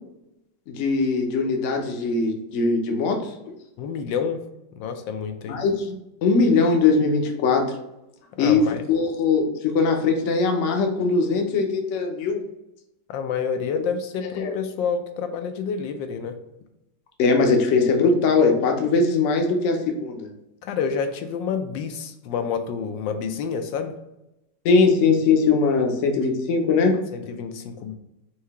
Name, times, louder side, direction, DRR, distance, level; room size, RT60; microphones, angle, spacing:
voice 1, 0.7-3.6 5.5-7.7 8.4-12.4 14.4-14.5 17.2-20.3 24.6-27.0, left 4 dB, 60° left, 3 dB, 0.8 m, -21 dB
voice 2, 3.8-4.4 4.8-5.6 8.4-8.8 13.1-16.4 20.6-24.0 27.1-28.0, left 6 dB, 85° left, 6 dB, 1.3 m, -28 dB
4.7 x 2.7 x 3.4 m, 0.90 s
omnidirectional pair, 2.0 m